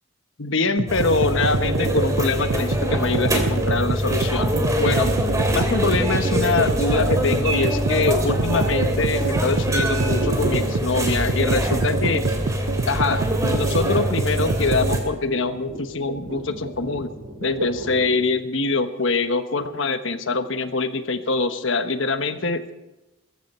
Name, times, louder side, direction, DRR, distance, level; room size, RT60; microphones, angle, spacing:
voice 1, 0.4-5.1 5.5-12.2 12.9-17.1 17.4-22.7, left 3 dB, 65° left, 9 dB, 1.1 m, -24 dB
sound 1, 0.8-15.1, right 5 dB, 60° right, 0.5 m, -27 dB
sound 2, 0.9-15.0, equal, 15° right, 2.7 m, -24 dB
sound 3, 4.9-11.2 12.0-12.4 12.7-18.4, right 1 dB, 85° right, 2.4 m, -37 dB
21.5 x 15.0 x 4.4 m, 1.0 s
head